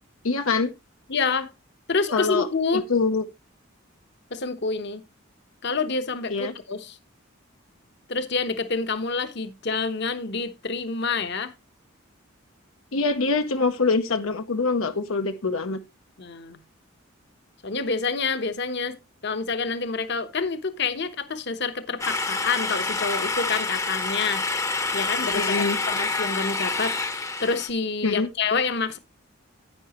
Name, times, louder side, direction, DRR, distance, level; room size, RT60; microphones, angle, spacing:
voice 1, 0.2-0.7 2.1-3.2 6.3-6.5 12.9-15.8 25.3-25.8 28.0-28.3, left 4 dB, 80° left, 0.9 m, -24 dB
voice 2, 1.1-1.5 1.9-2.8 4.3-5.0 5.6-7.0 8.1-11.5 16.2-16.6 17.6-19.0 19.2-24.4 24.9-29.0, left 4 dB, 55° left, 1.0 m, -28 dB
sound 1, 22.0-27.7, left 3 dB, 15° left, 0.8 m, -27 dB
10.5 x 9.5 x 3.0 m
head